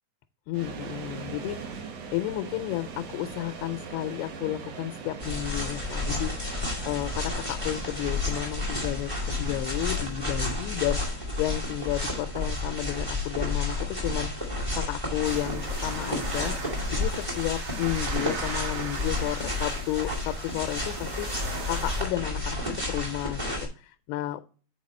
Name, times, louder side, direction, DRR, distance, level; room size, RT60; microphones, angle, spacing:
voice 1, 0.5-14.3 14.7-23.4 23.8-24.4, left 15 dB, 90° left, 9 dB, 2.5 m, -32 dB
sound 1, 0.5-17.5, right 5 dB, 70° right, 1.6 m, -43 dB
sound 2, 5.2-23.7, left 2 dB, 15° right, 1.0 m, -31 dB
sound 3, 15.2-22.0, right 4 dB, 50° right, 2.0 m, -39 dB
7.8 x 4.6 x 4.2 m, 0.40 s
omnidirectional pair, 4.5 m